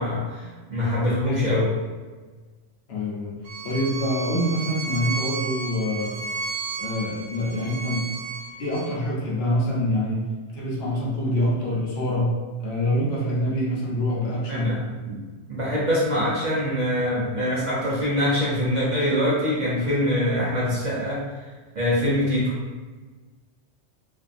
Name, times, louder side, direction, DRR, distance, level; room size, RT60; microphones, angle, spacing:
voice 1, 0.0-1.7 14.5-15.2 15.5-21.2 21.7-22.5, left 1 dB, 50° right, -8 dB, 0.6 m, -24 dB
voice 2, 2.9-3.4 3.6-6.2 6.8-8.1 8.6-10.2 10.5-12.3 12.6-14.8, equal, 65° left, -4 dB, 0.8 m, -25 dB
Bowed string instrument, 3.4-8.9, right 4 dB, 85° right, 0.9 m, -33 dB
2.6 x 2.2 x 2.4 m, 1.4 s
omnidirectional pair, 1.2 m